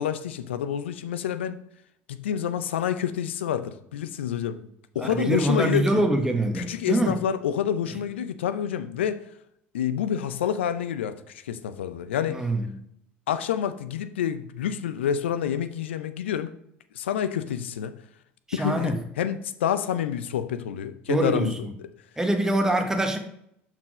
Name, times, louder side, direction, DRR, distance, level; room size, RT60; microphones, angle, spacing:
voice 1, 0.0-1.6 2.1-4.7 4.9-6.0 6.5-9.2 9.7-12.4 13.3-16.5 16.9-17.9 18.5-21.6, left 9 dB, 85° left, 0.5 m, -28 dB
voice 2, 5.0-7.2 12.3-12.7 18.5-19.0 21.1-21.7 22.2-23.2, right 1 dB, 10° right, 1.2 m, -24 dB
6.0 x 4.5 x 4.9 m
hypercardioid pair, 75°, 6 cm